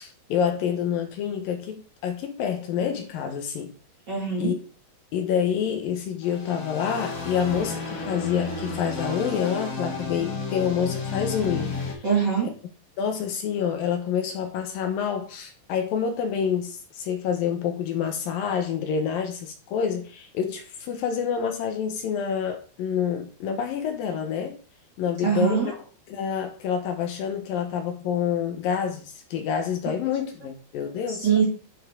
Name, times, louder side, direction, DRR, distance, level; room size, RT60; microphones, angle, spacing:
voice 1, 0.0-3.7 4.4-4.6 5.1-11.7 13.0-24.6 25.0-25.7 26.1-31.3, left 7 dB, 70° left, 2.6 m, -27 dB
voice 2, 4.1-4.5 12.0-12.5 25.2-25.7 31.1-31.4, right 7 dB, 30° right, 2.3 m, -23 dB
sound 1, 6.2-11.9, left 3 dB, 45° left, 1.0 m, -32 dB
10.0 x 5.5 x 3.7 m
omnidirectional pair, 4.5 m